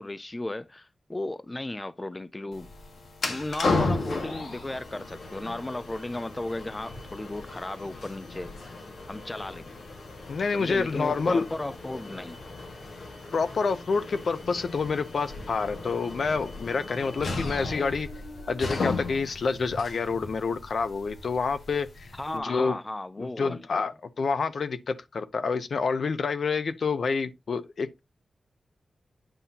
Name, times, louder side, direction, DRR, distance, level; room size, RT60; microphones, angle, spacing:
voice 1, 0.0-2.7 3.3-8.7 9.1-9.8 10.5-12.4 22.1-23.6, left 2 dB, 15° left, 0.3 m, -35 dB
sound 1, 2.5-22.4, left 3 dB, 85° left, 1.7 m, -35 dB
voice 2, 10.3-11.5 13.3-18.1 18.5-22.8 23.2-28.0, left 4 dB, 65° left, 0.6 m, -28 dB
9.0 x 5.6 x 2.8 m
wide cardioid pair, 175°, 0 cm